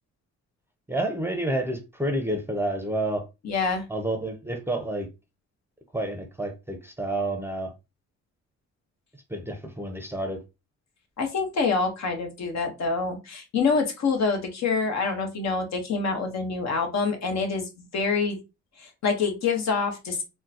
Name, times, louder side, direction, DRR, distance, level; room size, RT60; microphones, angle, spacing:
voice 1, 0.9-3.3 3.9-5.1 5.9-7.7 9.3-10.4, right 1 dB, 10° right, 0.6 m, -29 dB
voice 2, 3.4-3.8 11.2-18.4 18.8-20.2, left 4 dB, 65° left, 1.1 m, -26 dB
3.7 x 2.2 x 2.7 m
cardioid pair, 90°, 30 cm